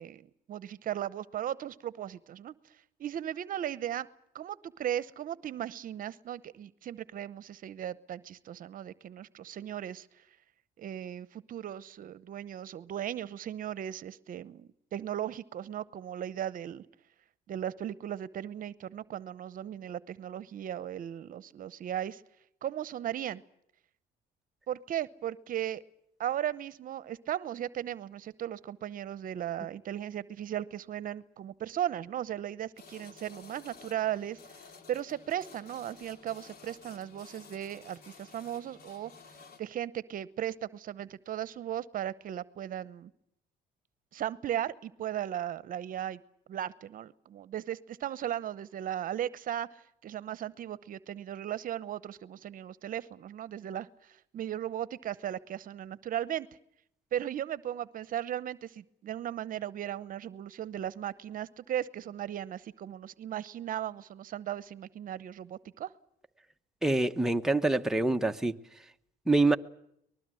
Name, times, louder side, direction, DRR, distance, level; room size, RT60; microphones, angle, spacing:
voice 1, 0.0-4.1 4.3-10.2 10.8-16.9 17.5-22.2 22.6-23.4 24.7-25.8 26.2-39.1 39.6-43.1 44.1-46.2 46.5-56.5 57.1-65.9, right 11 dB, 55° right, 0.9 m, -37 dB
sound 1, 32.8-39.6, left 5 dB, 65° left, 2.9 m, -53 dB
voice 2, 66.8-68.6 69.3-69.6, right 2 dB, 5° right, 1.0 m, -25 dB
24.0 x 20.5 x 7.7 m
cardioid pair, 110°, 17 cm